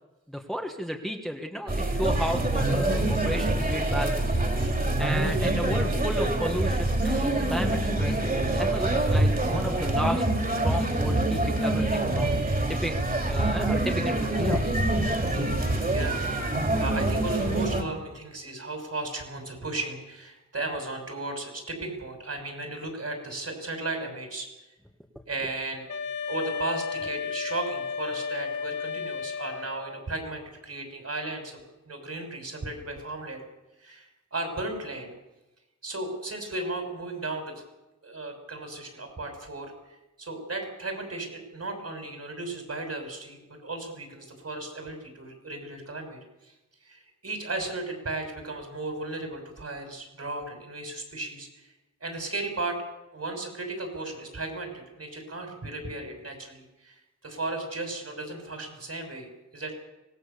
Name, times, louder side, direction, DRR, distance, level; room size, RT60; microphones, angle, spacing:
voice 1, 0.3-4.3 5.0-8.2 8.5-10.3 10.6-12.3 12.7-13.0 13.2-15.0, equal, ahead, 3 dB, 1.6 m, -33 dB
sound 1, 1.7-17.8, right 1 dB, 30° right, 3.4 m, -25 dB
voice 2, 15.2-15.6 15.9-16.2 16.5-24.5 25.3-26.0 26.3-33.4 33.8-35.1 35.8-37.5 38.0-46.5 46.8-51.7 52.0-52.8 53.1-59.7, right 2 dB, 55° right, 4 dB, 6.1 m, -35 dB
Wind instrument woodwind instrument, 25.9-30.1, left 5 dB, 70° left, 2.9 m, -33 dB
24.5 x 19.5 x 7.0 m, 1.0 s
wide cardioid pair, 115°, 29 cm